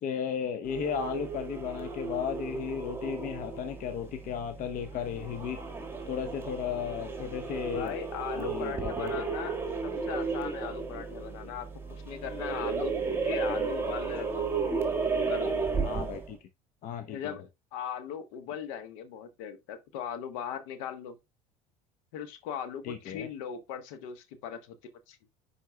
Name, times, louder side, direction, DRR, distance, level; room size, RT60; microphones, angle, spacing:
voice 1, 0.0-5.6 6.1-8.0 8.4-9.2 15.8-16.4 16.8-17.3 22.8-23.3, left 8 dB, 45° left, 0.9 m, -35 dB
sound 1, 0.6-16.3, right 4 dB, 10° right, 1.7 m, -34 dB
voice 2, 7.7-9.6 9.8-14.5 15.1-15.6 17.1-17.4 17.7-21.2 22.1-24.7 25.1-25.3, left 8 dB, 65° left, 1.2 m, -39 dB
10.0 x 4.3 x 2.2 m
figure-of-eight pair, 70°, 19 cm